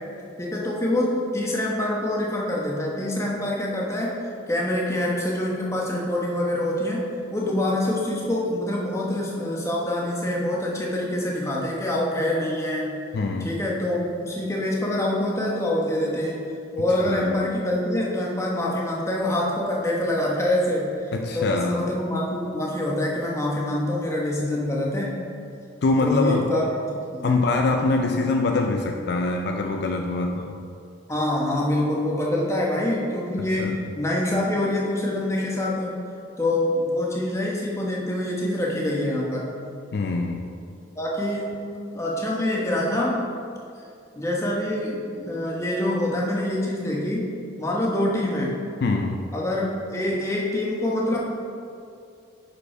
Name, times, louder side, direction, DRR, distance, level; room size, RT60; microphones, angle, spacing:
voice 1, 0.4-4.2 4.5-12.9 13.4-16.4 16.7-20.9 21.3-25.2 26.0-26.6 27.1-27.3 31.1-35.9 36.4-39.5 41.0-41.6 41.9-43.3 44.2-47.3 47.6-48.6 49.3-51.2, left 1 dB, 15° left, -3 dB, 0.9 m, -25 dB
voice 2, 13.1-13.6 17.1-17.3 21.1-21.9 25.8-26.6 27.2-30.6 33.4-33.9 39.9-40.5 48.8-49.3, left 3 dB, 55° left, 3 dB, 0.3 m, -24 dB
6.4 x 5.2 x 4.8 m, 2.5 s
head